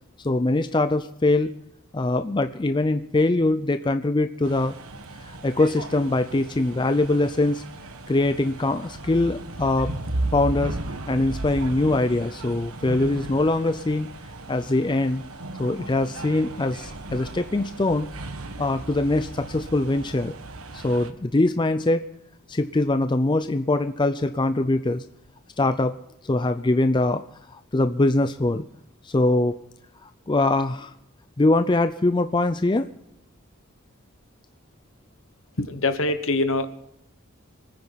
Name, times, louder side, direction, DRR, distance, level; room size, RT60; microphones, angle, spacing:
voice 1, 0.2-1.5 1.9-4.7 5.2-7.6 8.1-9.9 10.3-10.8 11.1-14.1 14.5-15.2 15.6-18.1 18.6-20.3 20.7-22.0 22.5-25.0 25.6-26.0 26.2-27.2 27.5-28.6 29.0-29.6 30.0-30.9 31.4-32.9, left 2 dB, 20° left, 10 dB, 0.4 m, -23 dB
sound 1, 4.4-21.1, right 2 dB, 80° right, 1.4 m, -36 dB
voice 2, 35.7-36.7, left 2 dB, 65° left, 10 dB, 1.2 m, -23 dB
25.0 x 9.6 x 4.0 m, 0.83 s
head